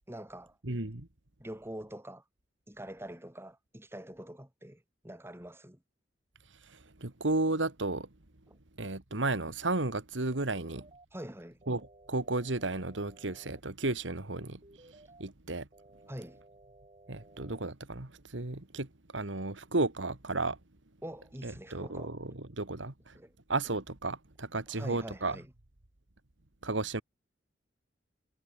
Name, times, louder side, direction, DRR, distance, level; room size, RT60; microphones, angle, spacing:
voice 1, 0.1-0.6 1.4-2.2 2.7-5.8 8.5-8.6 11.1-11.6 16.1-16.4 21.0-22.1 23.1-23.3 24.7-25.5, right 1 dB, 15° right, 6.1 m, -45 dB
voice 2, 0.6-1.1 6.7-8.1 8.8-10.9 11.7-11.8 12.1-14.6 14.9-15.7 17.1-18.9 19.1-20.6 21.4-23.2 23.5-25.4 26.6-27.0, right 2 dB, 85° right, 2.1 m, -33 dB
sound 1, 10.5-11.1 11.6-13.6 14.6-15.2 15.7-17.7, right 2 dB, 30° right, 6.2 m, -58 dB
head